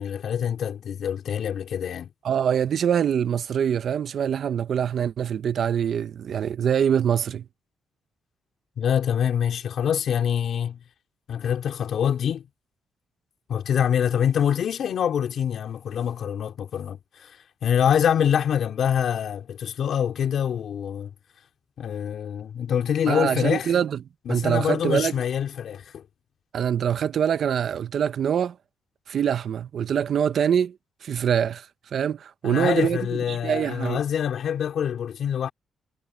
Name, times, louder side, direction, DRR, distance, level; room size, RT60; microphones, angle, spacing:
voice 1, 0.0-2.1 8.8-10.8 11.3-12.4 13.5-17.3 17.6-21.1 21.8-23.7 24.3-26.0 32.4-35.5, left 8 dB, 60° left, 3.7 m, -25 dB
voice 2, 2.2-7.4 23.1-24.0 24.3-25.1 26.5-28.6 29.1-30.8 31.0-34.0, right 8 dB, 55° right, 0.5 m, -24 dB
cardioid pair, 140°, 0 cm